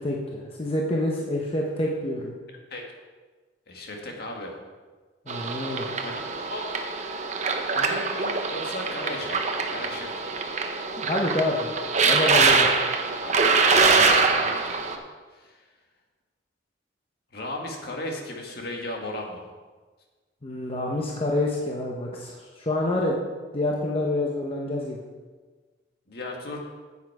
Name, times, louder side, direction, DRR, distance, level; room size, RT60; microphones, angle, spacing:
voice 1, 0.0-2.3 5.3-5.9 11.0-11.7 12.0-12.7 20.4-23.2 23.5-25.0, left 1 dB, 30° left, -2 dB, 0.9 m, -27 dB
voice 2, 3.7-4.6 5.9-6.7 7.7-10.4 13.2-13.4 13.8-15.0 15.3-15.7 17.3-19.4 26.1-26.6, left 1 dB, 55° left, 1 dB, 1.8 m, -36 dB
sound 1, 5.3-15.0, right 4 dB, 40° right, 0.8 m, -24 dB
9.2 x 8.5 x 4.7 m, 1.4 s
head